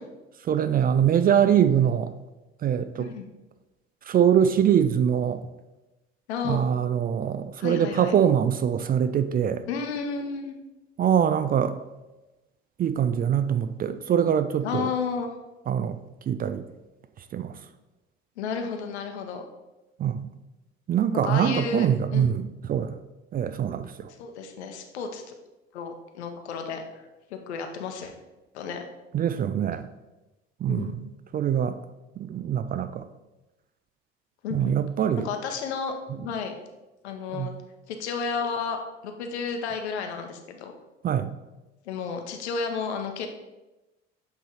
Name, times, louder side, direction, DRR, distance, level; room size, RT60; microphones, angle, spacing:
voice 1, 0.4-2.1 2.6-3.1 4.1-5.4 6.4-9.6 11.0-11.7 12.8-14.9 15.7-16.0 16.3-16.6 17.3-17.5 20.0-20.3 20.9-23.0 23.3-24.1 29.1-29.9 30.6-31.8 32.2-33.1 34.5-35.3 37.3-37.5 41.0-41.3, right 9 dB, 30° right, 12 dB, 0.4 m, -23 dB
voice 2, 6.3-6.6 7.6-8.1 9.7-10.6 14.6-15.3 18.4-19.4 21.2-22.3 24.2-25.2 25.7-26.8 27.3-28.1 28.5-28.8 30.7-31.0 34.4-34.8 35.2-36.5 37.0-37.5 37.9-38.8 39.0-40.7 41.9-43.3, left 5 dB, 80° left, 5 dB, 0.9 m, -32 dB
7.6 x 3.3 x 4.4 m, 1.0 s
hypercardioid pair, 60°, 33 cm